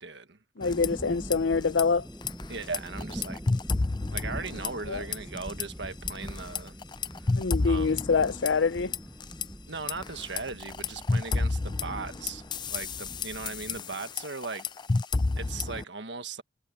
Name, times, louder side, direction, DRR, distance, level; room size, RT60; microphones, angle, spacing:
voice 1, 0.0-0.7 2.5-3.4 4.1-6.8 7.2-8.0 9.7-14.7 15.4-16.4, right 4 dB, 75° right, 1.5 m, -38 dB
voice 2, 0.6-2.0 4.9-5.0 7.4-8.9, left 4 dB, 85° left, 0.6 m, -25 dB
sound 1, 0.6-1.4 1.6-1.8 2.2-4.9 5.1-5.6 6.1-9.5 9.9-15.8, left 3 dB, 25° left, 0.4 m, -30 dB
sound 2, 0.7-13.8, equal, 5° right, 0.8 m, -43 dB
head